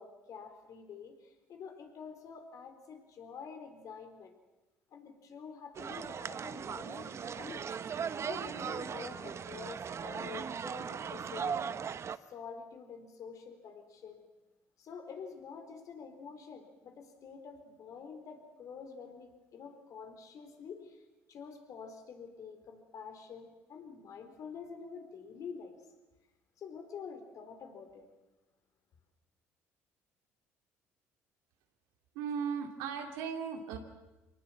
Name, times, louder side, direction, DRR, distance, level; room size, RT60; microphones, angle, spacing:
voice 1, 0.0-4.3 4.9-7.7 8.2-11.7 12.1-14.2 14.8-21.0 21.3-25.8 26.6-28.1, left 6 dB, 60° left, 6 dB, 4.2 m, -47 dB
sound 1, 5.7-12.2, right 7 dB, 45° right, 0.9 m, -38 dB
voice 2, 32.1-33.8, right 6 dB, 85° right, 3 dB, 2.8 m, -36 dB
24.0 x 19.0 x 7.7 m, 1.1 s
supercardioid pair, 70°, 7 cm